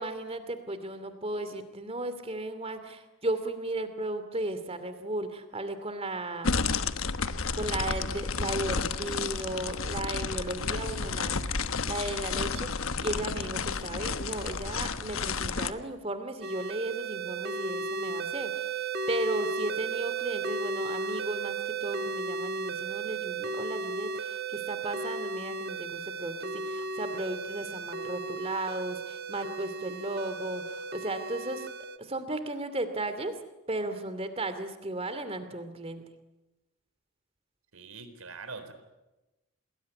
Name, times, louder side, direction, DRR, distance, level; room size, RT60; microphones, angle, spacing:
voice 1, 0.0-6.6 7.5-31.7 32.0-33.4 33.7-36.0, right 2 dB, 25° right, 10 dB, 2.6 m, -35 dB
sound 1, 6.4-15.7, left 4 dB, 65° left, 1.2 m, -31 dB
sound 2, 16.4-32.0, right 4 dB, 45° right, 1.4 m, -35 dB
voice 2, 37.7-38.7, right 4 dB, 70° right, 10 dB, 4.0 m, -43 dB
28.5 x 21.0 x 9.6 m, 1.0 s
head